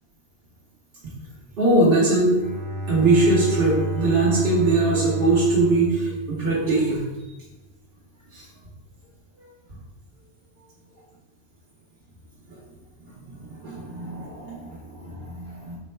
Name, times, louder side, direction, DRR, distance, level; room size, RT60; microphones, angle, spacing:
voice 1, 1.6-2.4 2.9-7.0 8.3-8.4 9.4-9.5 12.5-12.6 13.4-15.8, right 2 dB, 65° right, -6 dB, 1.0 m, -21 dB
Bowed string instrument, 2.4-7.0, right 2 dB, 25° left, 0.6 m, -30 dB
3.8 x 2.1 x 4.3 m, 1.0 s
omnidirectional pair, 1.0 m